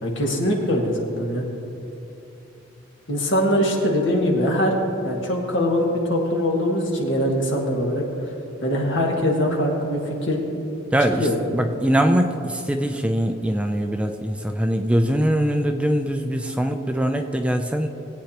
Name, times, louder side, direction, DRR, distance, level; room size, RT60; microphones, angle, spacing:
voice 1, 0.0-1.5 3.1-4.8 5.0-8.0 8.6-10.4 11.2-11.4, equal, 65° left, -1 dB, 1.8 m, -22 dB
voice 2, 10.9-17.9, right 1 dB, 5° right, 5 dB, 0.4 m, -22 dB
19.5 x 8.8 x 2.9 m, 2.9 s
head